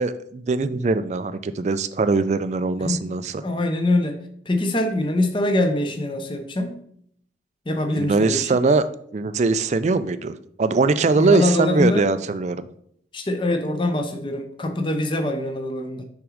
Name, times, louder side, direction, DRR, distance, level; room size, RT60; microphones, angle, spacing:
voice 1, 0.0-3.4 8.0-8.8 9.1-12.7, right 3 dB, 35° right, 12 dB, 0.3 m, -21 dB
voice 2, 3.4-4.2 4.5-6.8 7.7-8.6 11.2-12.1 13.1-16.0, left 1 dB, 25° left, 5 dB, 0.6 m, -24 dB
6.0 x 3.7 x 4.9 m, 0.67 s
head